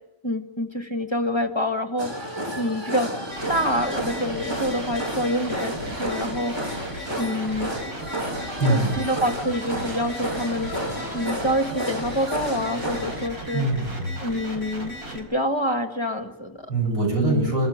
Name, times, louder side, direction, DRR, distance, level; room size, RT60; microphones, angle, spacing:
voice 1, 0.2-3.1 3.5-6.5 7.2-7.7 8.6-10.7 11.1-13.7 14.2-16.7 17.2-17.5, equal, 15° left, 5 dB, 1.9 m, -27 dB
sound 1, 2.0-13.3, equal, 15° right, 2.3 m, -31 dB
sound 2, 3.3-15.2, right 1 dB, 50° right, 5.5 m, -36 dB
voice 2, 8.6-8.9 13.5-14.1 16.7-17.7, right 2 dB, 70° right, -1 dB, 8.5 m, -23 dB
27.5 x 15.0 x 9.0 m, 1.0 s
omnidirectional pair, 2.0 m